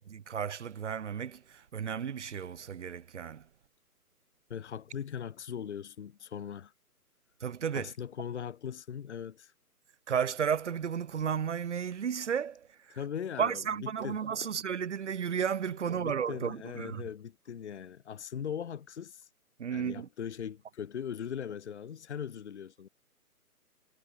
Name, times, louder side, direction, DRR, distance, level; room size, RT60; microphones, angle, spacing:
voice 1, 0.1-3.4 7.4-7.9 10.1-13.0 13.4-17.0 19.6-20.1, right 7 dB, 50° right, 1.3 m, -33 dB
voice 2, 4.5-6.7 7.7-9.5 12.9-14.5 15.8-19.3 19.7-22.9, left 8 dB, 45° left, 1.7 m, -40 dB
hypercardioid pair, 160°, 46 cm